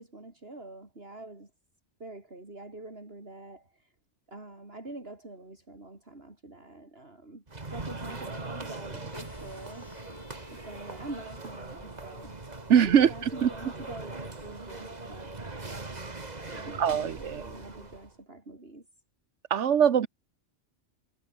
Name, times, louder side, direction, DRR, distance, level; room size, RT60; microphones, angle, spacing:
voice 1, 0.0-1.5 2.0-3.9 4.3-7.4 7.7-9.9 10.5-12.3 12.7-15.3 16.5-18.9, right 2 dB, 55° right, 4.7 m, -45 dB
sound 1, 7.5-18.1, right 3 dB, 35° right, 2.1 m, -41 dB
sound 2, 9.1-17.1, left 2 dB, 80° left, 4.3 m, -53 dB
voice 2, 12.7-13.5 16.8-17.4 19.5-20.1, right 8 dB, 75° right, 1.3 m, -22 dB
omnidirectional pair, 1.2 m